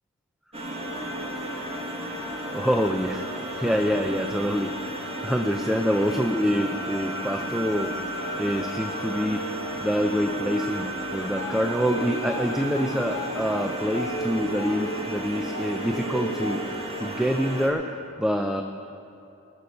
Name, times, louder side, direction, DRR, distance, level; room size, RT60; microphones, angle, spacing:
sound 1, 0.5-17.7, right 1 dB, 30° right, 1.9 m, -33 dB
voice 1, 2.5-3.3 3.6-7.9 8.4-16.6 17.0-18.6, equal, ahead, 5 dB, 0.4 m, -26 dB
sound 2, 11.2-17.0, equal, 75° left, 3.2 m, -36 dB
20.5 x 6.9 x 6.6 m, 2.9 s
head